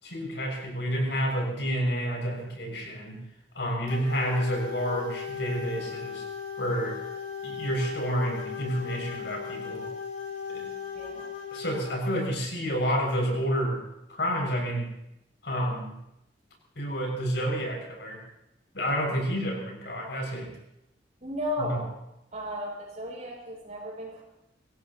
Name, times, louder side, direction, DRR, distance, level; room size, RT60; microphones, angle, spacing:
voice 1, 0.0-3.2 3.5-6.2 6.6-7.0 7.4-9.9 10.5-10.7 11.5-13.8 14.1-14.9 15.4-15.9 16.7-18.2 18.7-20.5 21.6-21.8, equal, 80° left, 0 dB, 6.7 m, -29 dB
sound 1, 3.9-12.3, left 6 dB, 50° left, 7.4 m, -37 dB
voice 2, 10.9-11.3 21.2-21.9 22.3-24.2, left 1 dB, 45° right, -2 dB, 6.7 m, -34 dB
25.0 x 16.5 x 3.0 m, 0.84 s
head